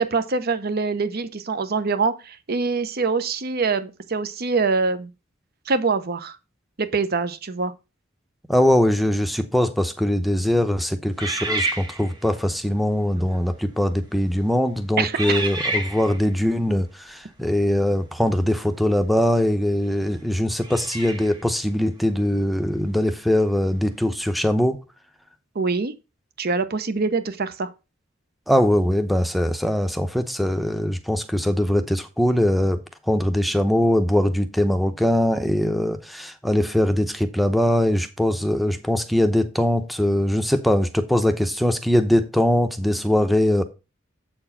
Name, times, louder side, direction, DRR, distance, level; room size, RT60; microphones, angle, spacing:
voice 1, 0.0-5.1 5.7-6.4 6.8-7.7 15.0-15.2 25.5-25.9 26.4-27.7, right 4 dB, 50° right, 0.8 m, -24 dB
voice 2, 8.5-24.8 28.5-32.8 33.1-43.6, left 1 dB, ahead, 0.7 m, -21 dB
sound 1, 11.2-12.4 13.2-13.4 14.1-14.4 15.2-16.3 19.0-19.1 20.6-21.5, right 2 dB, 20° right, 1.7 m, -29 dB
7.8 x 4.5 x 5.7 m
head